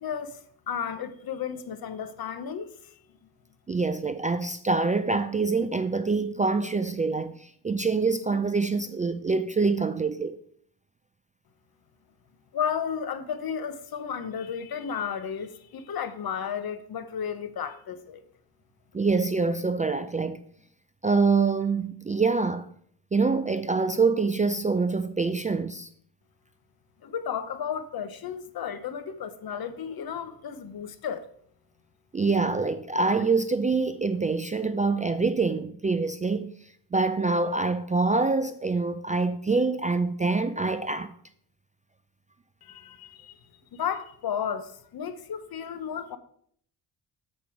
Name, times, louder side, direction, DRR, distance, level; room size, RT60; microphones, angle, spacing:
voice 1, 0.0-2.9 12.5-18.2 27.0-31.3 42.6-43.4 43.7-46.2, left 7 dB, 60° left, 0.9 m, -33 dB
voice 2, 3.7-10.4 18.9-20.4 21.0-22.7 23.1-25.9 32.1-36.5 36.9-41.1, right 4 dB, 20° right, 0.3 m, -25 dB
7.6 x 5.4 x 4.5 m
cardioid pair, 90°, 42 cm